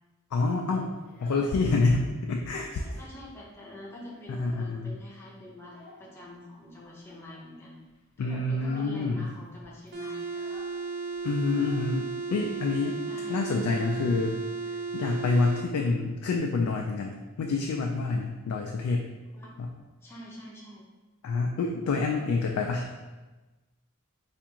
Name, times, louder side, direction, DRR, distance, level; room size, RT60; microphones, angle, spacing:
voice 1, 0.3-0.9 1.2-2.8 4.3-4.9 8.2-9.3 11.2-13.0 13.3-14.4 14.9-19.1 19.6-19.7 21.2-22.9, left 3 dB, 90° left, 1 dB, 0.3 m, -27 dB
Child speech kid speaking, 1.0-2.0 2.3-3.1 3.4-3.5 3.9-5.0 5.6-6.1 7.0-7.5 7.9-8.1 8.5-9.0 9.3-9.4 9.6-12.4, left 2 dB, 50° left, 0.6 m, -51 dB
voice 2, 3.0-7.8 8.2-10.3 13.1-13.4 19.3-19.5 20.0-20.8, left 1 dB, 10° left, -5 dB, 0.6 m, -46 dB
sound 1, 9.9-15.7, right 4 dB, 50° right, 0.5 m, -35 dB
3.4 x 2.5 x 2.9 m, 1.2 s
head